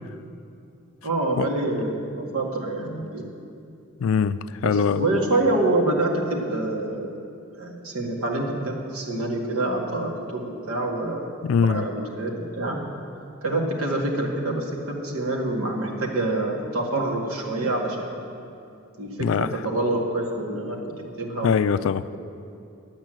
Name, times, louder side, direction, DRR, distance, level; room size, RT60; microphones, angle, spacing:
voice 1, 1.0-3.2 4.6-7.2 7.5-11.3 11.6-12.8 13.4-18.2 19.0-20.8 21.2-21.6, right 2 dB, 75° right, -2 dB, 2.0 m, -26 dB
voice 2, 4.0-5.1 11.4-11.8 19.2-19.6 21.4-22.1, left 6 dB, 65° left, 14 dB, 0.3 m, -22 dB
10.5 x 8.8 x 7.7 m, 2.5 s
head